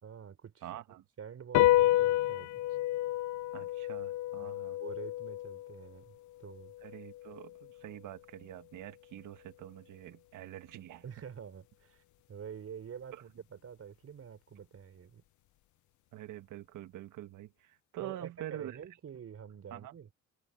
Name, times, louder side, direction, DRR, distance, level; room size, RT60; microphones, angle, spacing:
voice 1, 0.0-2.8 4.4-6.7 11.0-12.0 12.3-15.2 18.0-20.1, right 7 dB, 50° right, 4.1 m, -47 dB
voice 2, 0.6-1.0 3.5-4.8 6.8-11.0 13.1-13.2 16.1-18.8 19.7-19.9, right 13 dB, 85° right, 1.6 m, -46 dB
sound 1, 1.5-8.3, left 15 dB, 75° left, 0.5 m, -31 dB
cardioid pair, 90°, 30 cm